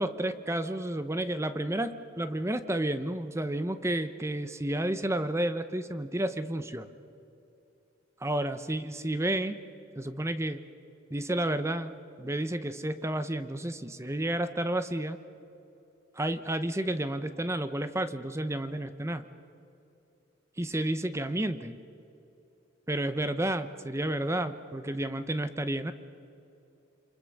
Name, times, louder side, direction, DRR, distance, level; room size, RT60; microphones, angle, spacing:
voice 1, 0.0-6.9 8.2-9.5 10.0-10.6 11.1-15.2 16.2-19.3 20.6-21.8 22.9-25.9, right 1 dB, 15° right, 11 dB, 0.8 m, -31 dB
28.0 x 25.0 x 6.6 m, 2.8 s
head